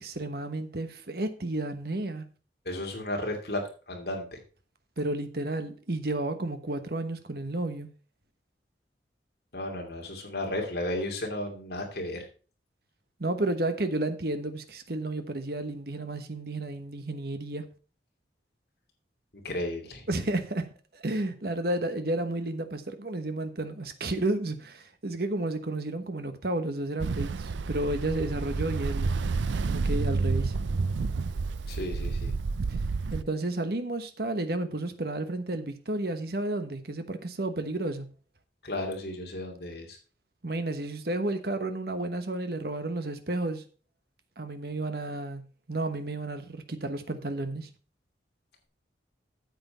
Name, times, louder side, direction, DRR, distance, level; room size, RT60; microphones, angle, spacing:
voice 1, 0.0-2.2 5.0-7.9 13.2-17.6 20.1-20.7 20.9-29.1 29.6-30.5 32.7-32.8 33.1-38.1 40.4-43.6 44.4-45.4 45.7-47.7, right 2 dB, 55° right, 1.2 m, -32 dB
voice 2, 2.6-4.4 9.5-12.3 19.4-20.0 31.7-32.3 38.6-40.0, left 1 dB, 60° left, 2.7 m, -34 dB
Ocean, 27.0-33.2, right 4 dB, 85° right, 0.5 m, -29 dB
9.3 x 7.9 x 4.2 m
head